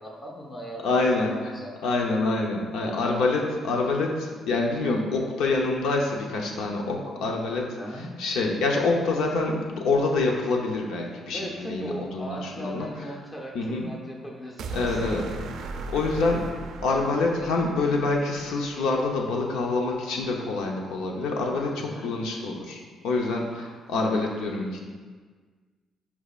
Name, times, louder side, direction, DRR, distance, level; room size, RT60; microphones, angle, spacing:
voice 1, 0.0-1.0 1.3-1.7 7.8-8.1 11.3-15.3 21.8-22.1, equal, 15° left, -1 dB, 0.9 m, -38 dB
voice 2, 0.8-1.5 1.8-12.9 13.5-13.9 14.7-15.2 15.9-16.5 16.8-24.9, left 3 dB, 85° left, 1 dB, 0.8 m, -26 dB
sound 1, 14.6-18.9, right 2 dB, 60° right, 0.4 m, -37 dB
8.4 x 4.9 x 2.5 m, 1.5 s
cardioid pair, 170°, 0 cm